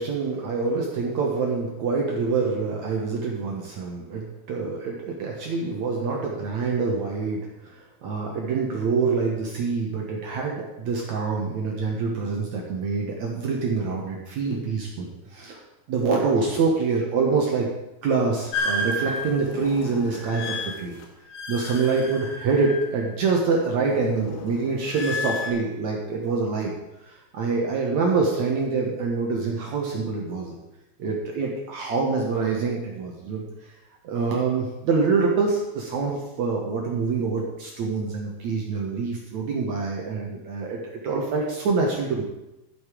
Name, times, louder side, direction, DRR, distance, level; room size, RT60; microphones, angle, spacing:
voice 1, 0.0-15.6 15.9-17.7 18.0-20.9 21.5-26.7 27.0-30.6 31.0-33.4 34.0-42.2, right 4 dB, 80° right, -1 dB, 1.6 m, -26 dB
sound 1, 18.5-23.2 23.6-25.5, left 2 dB, 85° left, 4.3 m, -32 dB
13.0 x 8.0 x 5.0 m, 0.95 s
omnidirectional pair, 5.4 m